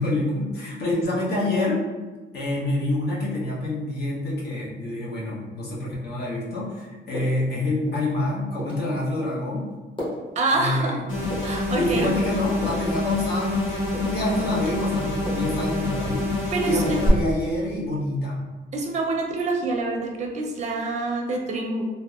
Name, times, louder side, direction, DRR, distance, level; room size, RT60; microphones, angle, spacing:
voice 1, 0.0-1.8 2.3-9.7 10.5-11.0 11.7-16.3 16.7-18.4, left 2 dB, 55° left, -6 dB, 0.9 m, -27 dB
sound 1, 6.7-6.9 7.1-7.5 7.9-8.1 8.6-8.8 9.3-9.5 10.0-10.3 10.7-10.8 11.3-11.6 12.0-12.9 13.3-13.5 13.9-14.3 14.6-15.5 15.9-16.3, left 1 dB, 25° left, 1.0 m, -36 dB
voice 2, 10.4-11.0 11.4-12.1 16.5-17.0 18.7-21.9, right 3 dB, 35° right, 1 dB, 0.5 m, -26 dB
sound 2, 11.1-17.1, left 2 dB, 80° left, 1.1 m, -27 dB
2.7 x 2.1 x 2.3 m, 1.3 s
cardioid pair, 90°, 20 cm